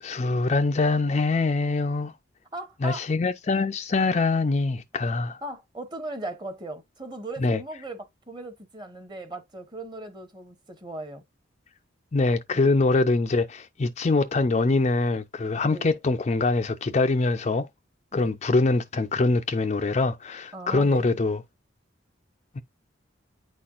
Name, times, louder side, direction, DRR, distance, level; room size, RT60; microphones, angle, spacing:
voice 1, 0.0-2.1 2.8-5.4 7.4-7.6 12.1-17.7 18.1-21.4, left 3 dB, 35° left, 0.4 m, -24 dB
voice 2, 2.5-3.1 5.4-11.2 12.5-12.7 15.7-16.0 18.1-18.3 20.5-21.1, right 2 dB, 20° right, 1.0 m, -38 dB
9.2 x 4.2 x 2.4 m
head